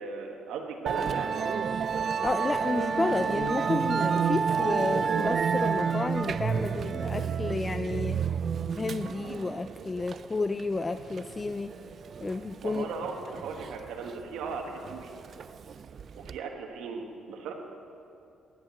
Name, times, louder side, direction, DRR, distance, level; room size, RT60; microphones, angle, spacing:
voice 1, 0.0-1.5 12.6-15.1 16.2-17.5, right 4 dB, 85° right, 2 dB, 1.3 m, -37 dB
Musical instrument, 0.9-16.4, right 6 dB, 55° right, 0.3 m, -30 dB
voice 2, 2.2-8.2 8.7-11.7 12.2-12.9, left 3 dB, 25° left, 10 dB, 0.3 m, -31 dB
11.0 x 7.9 x 7.0 m, 2.6 s
cardioid pair, 90°, 0 cm